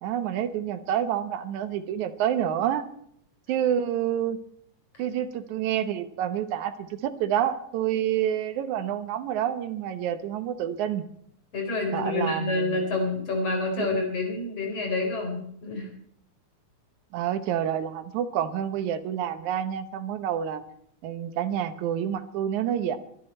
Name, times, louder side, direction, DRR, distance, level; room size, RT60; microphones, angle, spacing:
voice 1, 0.0-2.9 3.5-4.4 5.0-11.0 11.9-12.8 13.7-14.0 17.1-20.6 21.0-23.0, right 10 dB, 85° right, 9 dB, 2.5 m, -28 dB
voice 2, 11.5-15.9, left 3 dB, 55° left, 2 dB, 5.1 m, -28 dB
23.5 x 11.0 x 4.4 m, 0.69 s
omnidirectional pair, 3.3 m